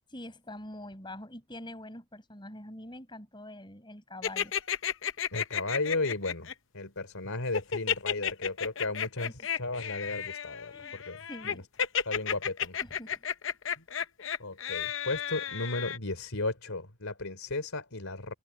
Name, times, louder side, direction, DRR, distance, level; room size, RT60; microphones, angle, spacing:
voice 1, 0.1-4.5 9.2-9.3 10.7-11.0 11.3-11.7 12.8-13.2, left 1 dB, 20° left, 7.9 m, -45 dB
sound 1, 4.2-6.5 7.5-16.0, left 8 dB, 60° left, 0.8 m, -32 dB
voice 2, 5.3-11.6 12.0-12.8 13.8-13.9 14.4-18.3, left 2 dB, 80° left, 3.4 m, -35 dB
open air
head